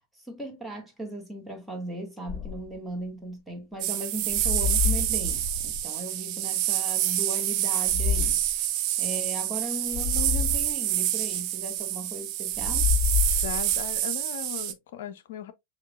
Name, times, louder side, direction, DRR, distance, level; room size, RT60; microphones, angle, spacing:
voice 1, 0.3-8.4 9.0-12.9, right 1 dB, 5° right, 1.4 m, -37 dB
sound 1, 2.3-2.7 4.3-5.8 7.9-8.5 9.9-10.7 12.5-13.9, left 7 dB, 30° left, 1.8 m, -28 dB
sound 2, 3.8-14.7, right 13 dB, 40° right, 0.5 m, -27 dB
voice 2, 13.4-15.5, left 10 dB, 55° left, 0.5 m, -38 dB
6.5 x 2.4 x 2.2 m
figure-of-eight pair, 90°, 0 cm